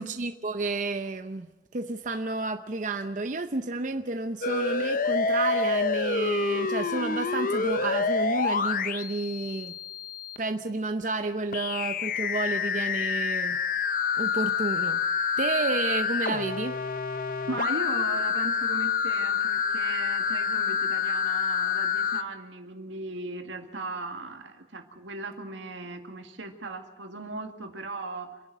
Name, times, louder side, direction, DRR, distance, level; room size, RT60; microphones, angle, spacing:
voice 1, 0.0-1.5 1.7-9.8 10.4-13.6 14.2-15.0 15.4-16.8, right 3 dB, 45° right, 7 dB, 0.7 m, -31 dB
sound 1, 4.4-10.4 11.5-22.2, left 5 dB, 45° left, 0.7 m, -27 dB
voice 2, 17.5-28.4, right 2 dB, 85° right, 5 dB, 2.2 m, -37 dB
27.0 x 11.0 x 9.2 m, 1.1 s
head